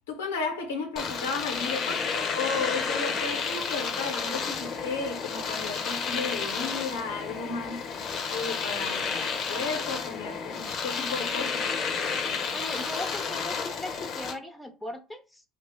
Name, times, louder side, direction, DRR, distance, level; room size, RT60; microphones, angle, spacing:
voice 1, 0.1-7.9 8.3-11.7, left 4 dB, 90° left, 0.6 m, -34 dB
Domestic sounds home sounds, 1.0-14.4, left 5 dB, 50° left, 0.6 m, -31 dB
voice 2, 12.5-15.4, left 1 dB, 5° left, 0.7 m, -38 dB
2.3 x 2.0 x 3.4 m
hypercardioid pair, 75°, 0 cm